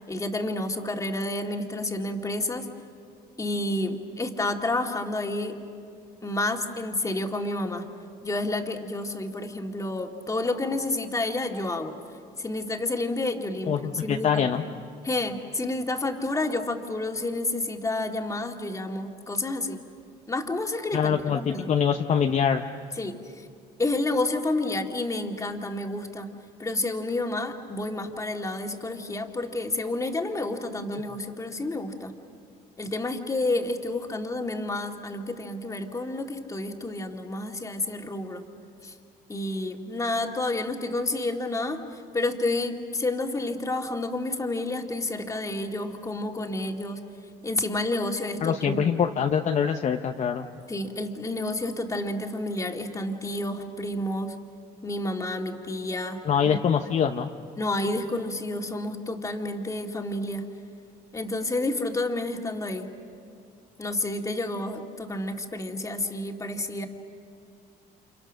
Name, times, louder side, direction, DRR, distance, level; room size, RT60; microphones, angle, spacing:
voice 1, 0.1-2.7 3.4-5.6 6.2-7.9 8.2-11.9 12.4-14.6 15.0-19.8 20.3-21.7 23.0-23.5 23.8-26.3 26.6-32.1 32.8-38.5 38.8-38.9 39.3-47.0 47.4-48.8 50.7-54.4 54.8-56.6 57.6-60.5 61.1-62.9 63.8-66.9, left 2 dB, 20° left, 3 dB, 2.2 m, -30 dB
voice 2, 13.7-14.6 20.9-22.6 48.4-50.5 56.3-57.3, left 7 dB, 45° left, 4 dB, 0.9 m, -24 dB
30.0 x 28.0 x 6.4 m, 2.3 s
cardioid pair, 110°, 17 cm